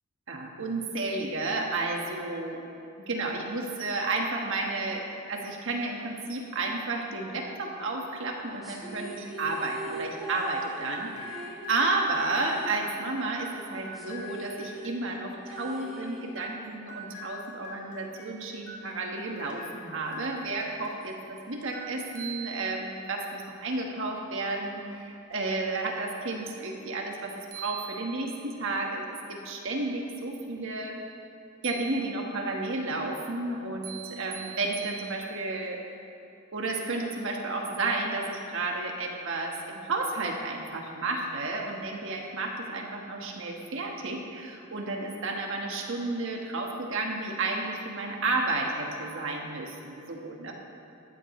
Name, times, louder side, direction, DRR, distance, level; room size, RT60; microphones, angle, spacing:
voice 1, 0.3-2.6 2.9-5.0 5.3-31.0 31.6-35.8 36.5-50.5, right 2 dB, 60° right, 1 dB, 1.5 m, -32 dB
sound 1, 8.6-13.3 13.5-13.6 13.9-16.6, right 1 dB, ahead, 1.9 m, -41 dB
sound 2, 10.4-21.2 21.6-22.5, equal, 55° left, 2.1 m, -46 dB
sound 3, 21.7-21.8 22.1-23.2 27.1-27.2 27.5-28.6 31.6-32.5 33.8-35.6, right 10 dB, 40° right, 0.9 m, -43 dB
14.0 x 12.5 x 3.2 m, 2.8 s
head